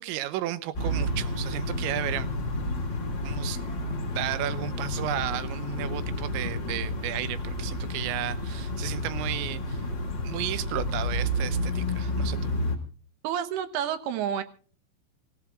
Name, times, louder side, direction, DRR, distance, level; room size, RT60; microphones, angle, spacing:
voice 1, 0.0-2.3 3.2-3.6 4.2-9.8 10.2-12.6, right 14 dB, 85° right, 3.2 m, -33 dB
sound 1, 0.7-12.8, left 1 dB, 30° left, 2.9 m, -30 dB
voice 2, 13.2-14.4, right 9 dB, 70° right, 3.0 m, -29 dB
27.0 x 16.0 x 2.4 m
omnidirectional pair, 5.1 m